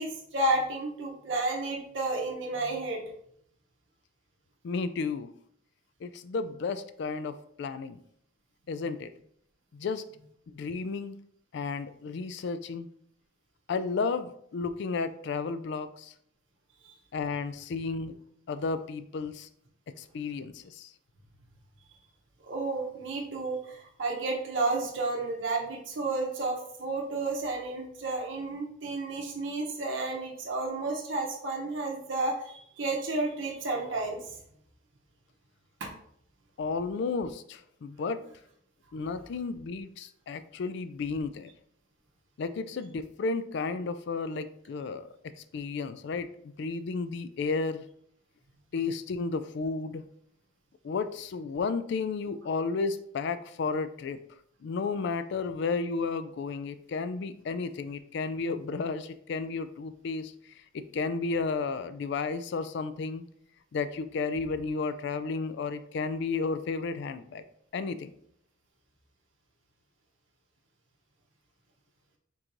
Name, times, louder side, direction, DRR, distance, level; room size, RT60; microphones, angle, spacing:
voice 1, 0.0-3.0 16.8-16.9 22.4-34.2 35.8-35.9, right 2 dB, 70° right, -1 dB, 0.8 m, -31 dB
voice 2, 4.6-5.3 6.0-8.0 8.7-9.1 9.7-10.0 10.5-11.2 11.5-12.9 13.7-16.1 17.1-18.1 18.5-19.5 20.0-20.9 36.6-38.2 38.9-41.5 42.4-45.1 45.3-46.3 46.6-47.8 48.7-50.0 50.8-54.2 54.6-60.3 60.7-63.2 63.7-67.4 67.7-68.1, left 4 dB, 60° left, 11 dB, 0.3 m, -32 dB
4.5 x 3.7 x 2.6 m, 0.67 s
head